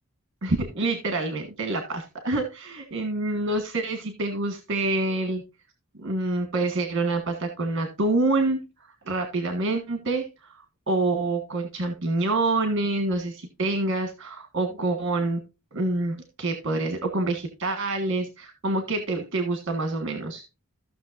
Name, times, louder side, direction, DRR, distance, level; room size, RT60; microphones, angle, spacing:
voice 1, 0.4-5.4 6.0-8.6 9.0-10.5 10.9-15.4 15.7-20.4, right 2 dB, 60° right, 6 dB, 1.5 m, -27 dB
15.5 x 6.3 x 2.6 m, 0.27 s
head